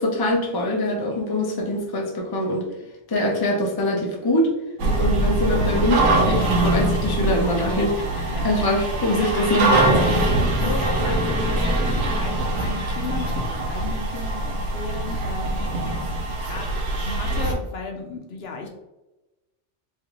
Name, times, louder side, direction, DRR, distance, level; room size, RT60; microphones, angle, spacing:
voice 1, 0.0-2.7 3.1-4.5 5.0-7.9 8.4-10.2 10.6-10.7, left 1 dB, 25° left, 0 dB, 0.6 m, -23 dB
sound 1, 4.8-17.5, right 2 dB, 85° right, 1.1 m, -23 dB
voice 2, 8.8-9.5 10.6-15.9 16.4-18.7, left 3 dB, 65° left, 2 dB, 0.8 m, -35 dB
3.7 x 3.2 x 3.0 m, 1.0 s
omnidirectional pair, 1.2 m